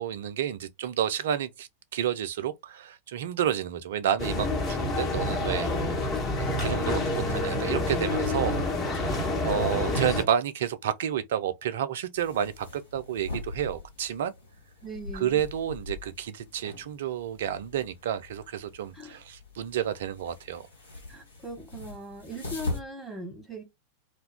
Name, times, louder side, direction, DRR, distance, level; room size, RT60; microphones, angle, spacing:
voice 1, 0.0-5.7 6.6-8.6 8.9-14.3 15.1-20.7, right 10 dB, 60° right, 0.3 m, -30 dB
sound 1, 4.2-10.2, left 2 dB, 35° left, 1.0 m, -28 dB
voice 2, 7.1-7.9 14.8-15.4 18.9-19.2 21.1-23.6, right 1 dB, ahead, 1.1 m, -40 dB
sound 2, 12.1-22.8, left 2 dB, 75° left, 1.1 m, -41 dB
2.3 x 2.2 x 3.3 m
figure-of-eight pair, 90°, 0 cm